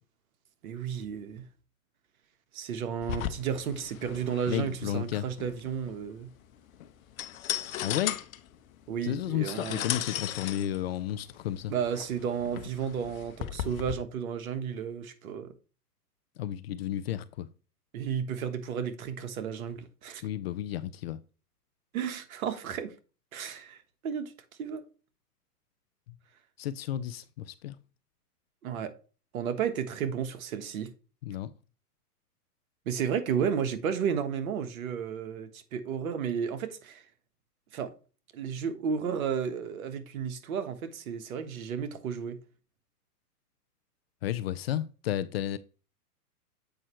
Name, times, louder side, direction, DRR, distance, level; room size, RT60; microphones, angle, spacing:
voice 1, 0.6-1.4 2.5-6.3 8.9-9.8 11.7-15.5 17.9-20.2 21.9-22.9 23.3-23.8 24.0-24.3 24.6-24.8 28.6-28.9 29.3-30.9 32.8-37.0 37.7-37.9 38.3-42.4, right 7 dB, 60° right, 1.4 m, -33 dB
sound 1, 3.0-13.9, left 11 dB, 60° left, 0.9 m, -37 dB
voice 2, 4.5-5.2 7.8-8.2 9.0-11.7 16.4-17.5 20.2-21.2 26.6-27.8 31.2-31.5 44.2-45.6, left 11 dB, 40° left, 0.4 m, -32 dB
7.8 x 5.4 x 3.1 m
hypercardioid pair, 130°, 47 cm